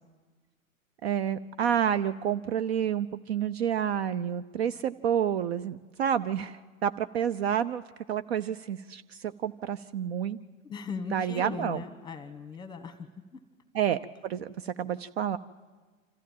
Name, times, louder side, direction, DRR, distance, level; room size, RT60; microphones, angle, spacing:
voice 1, 1.0-7.8 8.1-10.4 11.1-11.8 13.7-15.4, right 9 dB, 50° right, 12 dB, 0.5 m, -29 dB
voice 2, 10.6-13.4, left 5 dB, 10° left, 9 dB, 1.2 m, -39 dB
26.5 x 14.0 x 7.4 m, 1.4 s
figure-of-eight pair, 95°, 41 cm